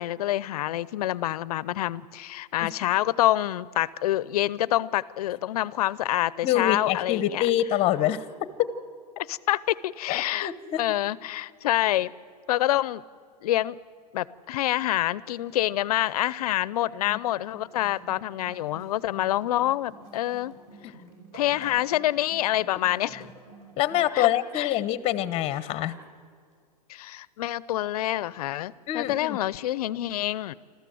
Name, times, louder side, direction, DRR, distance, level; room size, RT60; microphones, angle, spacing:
voice 1, 0.0-7.5 9.2-10.5 10.8-12.1 12.5-13.0 13.4-13.8 14.1-20.6 21.3-23.3 24.1-24.3 24.5-24.7 26.9-30.5, left 14 dB, 65° left, 20 dB, 0.7 m, -27 dB
voice 2, 6.4-8.2 10.1-10.8 17.1-17.2 23.8-25.9 28.9-29.4, left 12 dB, 30° left, 15 dB, 1.0 m, -25 dB
sound 1, 17.2-24.0, right 2 dB, 30° right, 5.5 m, -49 dB
25.5 x 14.5 x 7.8 m, 2.1 s
hypercardioid pair, 135°, 21 cm